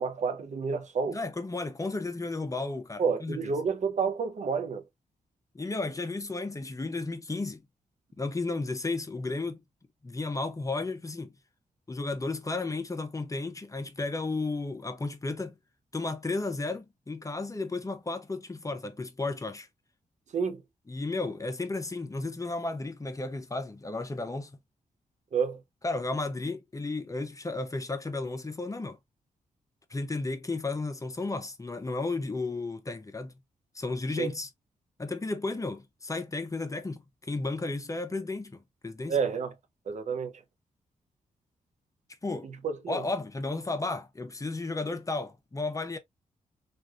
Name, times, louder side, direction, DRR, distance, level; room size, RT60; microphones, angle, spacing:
voice 1, 0.0-1.2 3.0-4.8 20.3-20.6 25.3-25.6 34.2-34.3 39.1-39.5 39.9-40.3 42.6-43.0, right 5 dB, 55° right, 0.6 m, -29 dB
voice 2, 1.1-3.4 5.5-7.6 8.2-9.6 10.0-11.3 11.9-15.6 15.9-19.7 20.9-24.5 25.8-29.0 29.9-33.3 33.7-34.5 35.0-37.0 37.3-39.2 42.2-42.5 42.9-46.0, left 3 dB, 25° left, 0.7 m, -33 dB
3.2 x 2.5 x 2.3 m
cardioid pair, 70°, 14 cm